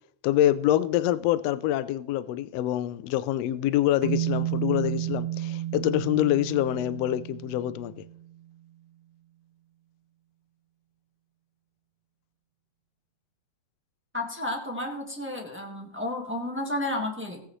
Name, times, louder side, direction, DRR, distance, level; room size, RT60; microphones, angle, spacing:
voice 1, 0.2-7.9, left 13 dB, 80° left, 1.5 m, -25 dB
sound 1, 4.0-8.3, right 14 dB, 75° right, 2.2 m, -32 dB
voice 2, 14.1-17.4, left 1 dB, 15° right, 0.4 m, -32 dB
18.0 x 8.7 x 3.2 m
omnidirectional pair, 3.5 m